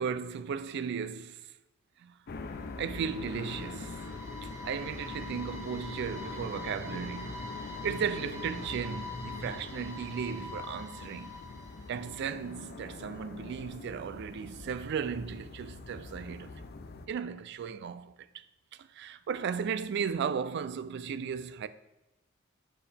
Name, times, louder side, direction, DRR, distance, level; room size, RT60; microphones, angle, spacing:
voice 1, 0.0-1.6 2.0-2.1 2.8-4.0 4.4-7.4 7.8-11.4 11.9-16.5 17.1-18.1 18.8-21.7, right 7 dB, 55° right, 0.3 m, -35 dB
sound 1, 2.3-17.1, left 3 dB, 50° left, 0.4 m, -43 dB
sound 2, 2.4-12.5, left 2 dB, 15° right, 0.8 m, -45 dB
7.4 x 4.6 x 3.4 m
head